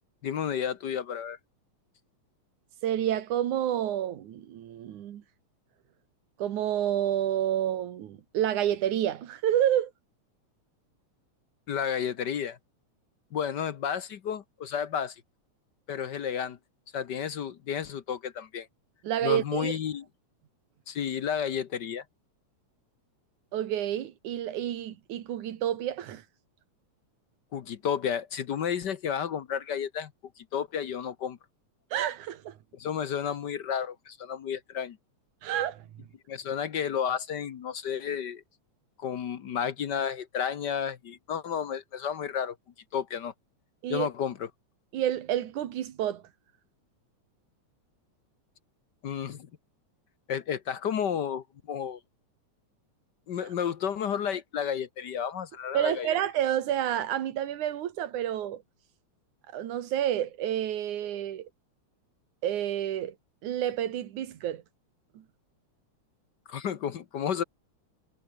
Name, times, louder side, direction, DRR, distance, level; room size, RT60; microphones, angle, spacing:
voice 1, 0.2-1.4 11.7-12.6 13.3-15.2 15.9-16.6 16.9-18.7 19.2-20.0 20.9-22.0 27.5-30.1 30.4-31.4 32.8-35.0 36.3-38.4 39.0-42.6 42.9-43.3 43.9-44.5 49.0-49.5 50.3-52.0 53.3-56.1 66.5-67.4, left 8 dB, 60° left, 1.1 m, -32 dB
voice 2, 2.8-5.2 6.4-9.9 19.0-19.8 23.5-26.2 31.9-32.6 35.4-36.1 43.8-44.1 44.9-46.2 55.7-58.6 59.5-61.5 62.4-63.2 63.4-64.6 65.1-65.2, right 11 dB, 90° right, 3.0 m, -29 dB
omnidirectional pair, 3.4 m